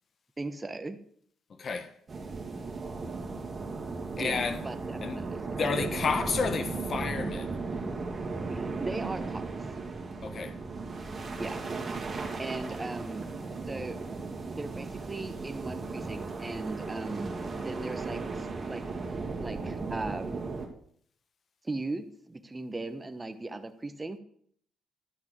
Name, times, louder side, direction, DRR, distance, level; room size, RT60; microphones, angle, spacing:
voice 1, 0.4-1.0 4.2-5.9 8.5-9.4 11.4-11.6 12.4-13.3 13.7-14.0 14.6-18.8 19.4-20.4 21.6-24.2, right 2 dB, 20° right, 0.9 m, -38 dB
voice 2, 1.6-1.9 4.2-4.6 5.0-5.2 5.6-7.5 10.2-10.6, left 5 dB, 50° left, 0.9 m, -31 dB
sound 1, 2.1-20.7, right 3 dB, 40° right, 2.2 m, -36 dB
11.0 x 5.9 x 6.6 m
cardioid pair, 90°, 0 cm